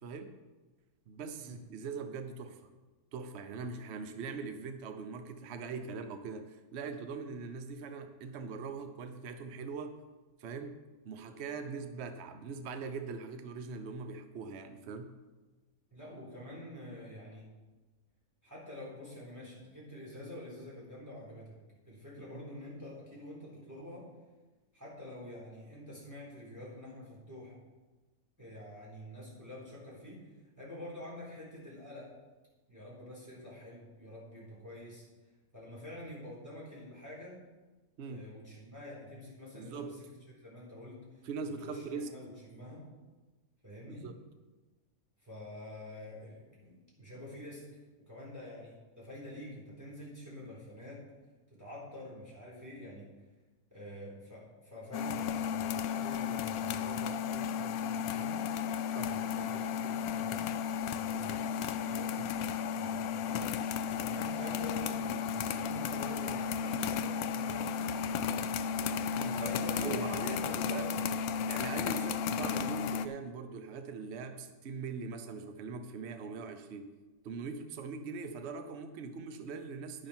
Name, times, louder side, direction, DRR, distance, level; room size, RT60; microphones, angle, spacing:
voice 1, 0.0-0.4 1.1-2.7 3.1-10.0 10.4-10.8 11.0-15.1 22.3-22.4 38.0-38.3 39.5-40.0 41.2-42.2 43.9-44.1 58.9-59.1 62.1-62.3 69.1-70.9 71.5-76.9 77.2-80.1, right 5 dB, 50° right, 7 dB, 1.0 m, -41 dB
voice 2, 15.9-17.5 18.4-21.6 21.8-24.1 24.7-27.6 28.4-32.1 32.7-35.0 35.5-37.4 38.0-40.1 40.4-42.8 43.6-44.1 45.2-47.6 48.1-51.0 51.5-53.1 53.7-58.4 59.0-60.5 60.9-62.1 62.7-63.5 63.9-68.0 69.2-71.0, left 1 dB, 10° right, -6 dB, 4.1 m, -47 dB
sound 1, 54.9-73.1, left 7 dB, 80° left, 1.0 m, -34 dB
11.5 x 10.0 x 4.4 m, 1.2 s
omnidirectional pair, 1.5 m